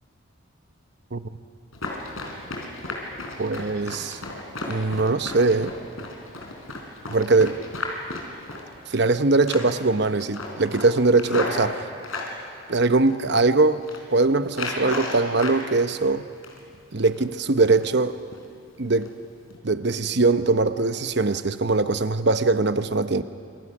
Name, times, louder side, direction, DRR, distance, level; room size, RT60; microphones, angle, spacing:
Run, 1.7-9.1 9.4-9.9 10.2-12.3 12.9-13.5 13.7-14.0 14.5-15.6 15.9-16.7 17.1-17.3 17.7-18.0 18.3-18.5 18.9-19.1 19.4-19.6, left 2 dB, 80° left, 4.4 m, -34 dB
voice 1, 3.4-4.2 4.7-5.7 7.1-7.6 8.9-11.9 12.7-13.8 14.1-16.3 16.9-18.2 18.8-19.1 19.6-23.2, right 3 dB, 55° right, 11 dB, 0.9 m, -21 dB
28.5 x 27.5 x 6.1 m, 2.3 s
head